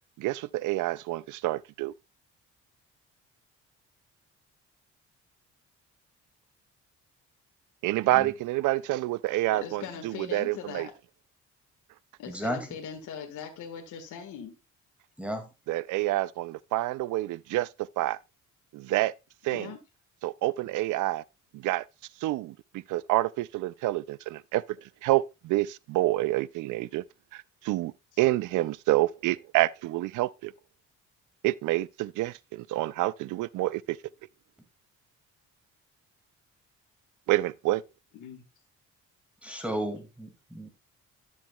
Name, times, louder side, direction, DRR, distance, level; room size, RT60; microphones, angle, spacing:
voice 1, 0.2-1.9 7.8-10.9 15.7-18.2 18.7-19.1 19.4-19.7 20.2-21.2 21.5-21.8 22.2-24.6 25.0-27.0 27.3-30.5 31.4-34.0 37.3-37.8, right 17 dB, 80° right, 0.5 m, -28 dB
voice 2, 9.5-10.9 12.2-14.6 19.5-19.8 38.1-38.5, left 7 dB, 80° left, 1.7 m, -40 dB
voice 3, 12.3-12.7 15.2-15.5 39.4-40.7, equal, 5° right, 2.2 m, -33 dB
11.5 x 7.3 x 2.3 m
cardioid pair, 90°, 30 cm